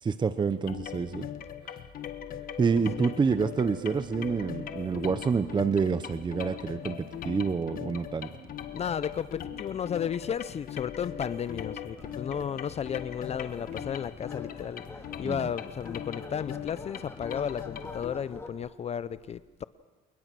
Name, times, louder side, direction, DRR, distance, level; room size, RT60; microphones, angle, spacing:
voice 1, 0.0-1.3 2.6-8.4 15.2-15.5, right 5 dB, 25° right, 11 dB, 0.9 m, -28 dB
sound 1, 0.7-18.1, left 9 dB, 55° left, 1.5 m, -40 dB
sound 2, 3.5-14.2, right 7 dB, 55° right, 2.7 m, -53 dB
voice 2, 8.7-19.6, left 8 dB, 40° left, 15 dB, 0.6 m, -34 dB
sound 3, 12.0-18.5, left 2 dB, 15° left, 3.3 m, -47 dB
27.5 x 20.5 x 6.2 m, 1.4 s
cardioid pair, 110°, 17 cm